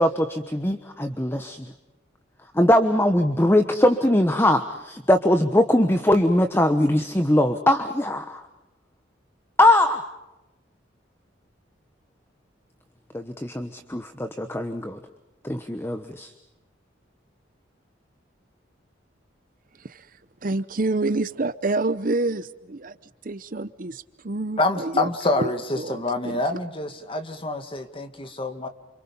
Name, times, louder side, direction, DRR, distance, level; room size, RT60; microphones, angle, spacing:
voice 1, 0.0-1.6 2.5-8.4 9.6-10.0 13.1-15.0 15.4-16.3, left 1 dB, 10° left, 7 dB, 1.1 m, -21 dB
voice 2, 20.4-23.0 23.2-26.4, right 2 dB, 45° right, 14 dB, 0.8 m, -28 dB
voice 3, 24.6-28.7, left 2 dB, 30° left, 7 dB, 2.1 m, -26 dB
29.0 x 27.0 x 5.5 m, 1.0 s
head